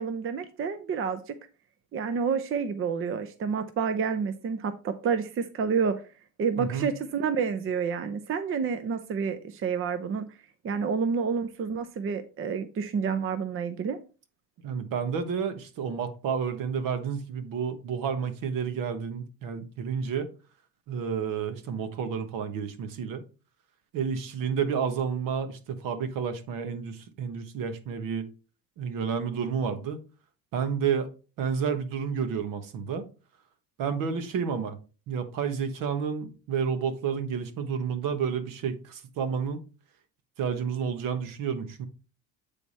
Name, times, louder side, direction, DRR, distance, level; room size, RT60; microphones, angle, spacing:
voice 1, 0.0-1.4 1.9-6.0 6.4-10.3 10.6-14.0, right 6 dB, 35° right, 0.7 m, -29 dB
voice 2, 6.6-6.9 14.6-20.3 20.9-23.2 23.9-28.3 28.8-30.0 30.5-31.1 31.4-33.0 33.8-34.8 35.1-39.6 40.4-41.9, right 6 dB, 65° right, 1.3 m, -30 dB
9.0 x 3.5 x 4.2 m
cardioid pair, 105°, 35 cm